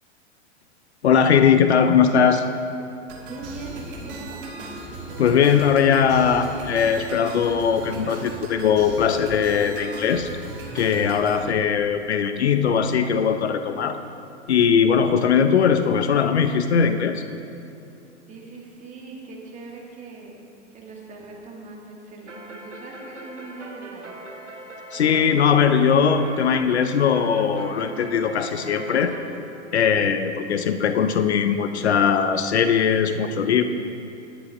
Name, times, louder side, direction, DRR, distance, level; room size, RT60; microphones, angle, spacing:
voice 1, 1.0-2.5 5.2-10.3 10.7-14.0 14.5-17.2 24.9-29.1 29.7-33.6, left 7 dB, 65° left, 9 dB, 0.7 m, -20 dB
sound 1, 3.1-11.5, right 3 dB, 50° right, 2.0 m, -38 dB
voice 2, 3.2-4.6 18.3-20.4 20.7-24.2, right 3 dB, 20° right, -2 dB, 1.9 m, -41 dB
sound 2, 3.6-9.9, right 2 dB, 5° right, 0.5 m, -43 dB
sound 3, 22.3-29.3, right 2 dB, 80° right, 1.5 m, -40 dB
19.5 x 10.0 x 2.6 m, 2.8 s
figure-of-eight pair, 95°, 36 cm